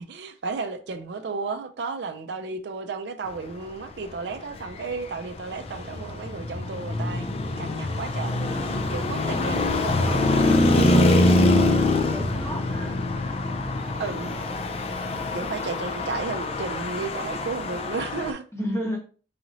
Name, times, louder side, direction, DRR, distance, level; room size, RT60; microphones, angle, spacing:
voice 1, 0.0-7.3 7.6-8.5 8.9-10.3 14.0-14.3 15.3-18.4, right 4 dB, 65° right, 0.4 m, -33 dB
Traffic noise roadway noise, 4.6-18.3, left 2 dB, 35° left, 0.4 m, -24 dB
voice 2, 10.9-11.4 11.9-13.0 18.5-19.0, equal, 15° left, 1.3 m, -32 dB
4.8 x 3.0 x 2.6 m
head